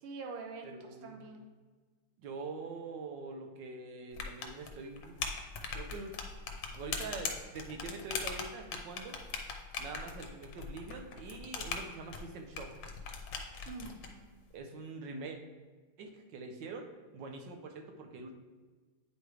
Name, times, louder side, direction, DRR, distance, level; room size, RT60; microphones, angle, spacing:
voice 1, 0.0-1.4 13.7-14.3, right 4 dB, 85° right, 3 dB, 1.6 m, -45 dB
voice 2, 0.6-1.2 2.2-5.2 5.7-6.1 6.8-9.2 9.8-12.7 14.5-15.4 16.0-16.9 17.1-18.3, right 3 dB, 70° right, 4 dB, 1.2 m, -44 dB
sound 1, 4.1-14.1, left 5 dB, 65° left, 1.4 m, -40 dB
9.3 x 3.2 x 4.7 m, 1.4 s
omnidirectional pair, 2.4 m